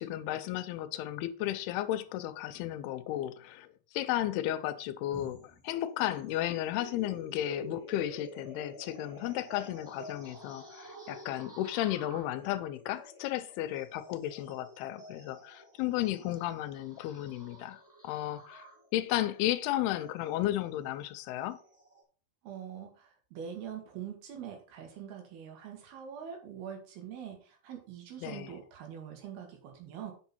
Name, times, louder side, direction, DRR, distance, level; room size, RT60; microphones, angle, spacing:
voice 1, 0.0-3.7 3.9-18.7 18.9-21.6 28.2-28.5, left 13 dB, 85° left, 2.6 m, -34 dB
sound 1, 5.1-22.0, equal, ahead, 3.1 m, -50 dB
voice 2, 22.4-30.1, right 8 dB, 75° right, 3.6 m, -44 dB
8.2 x 6.2 x 4.3 m
omnidirectional pair, 4.5 m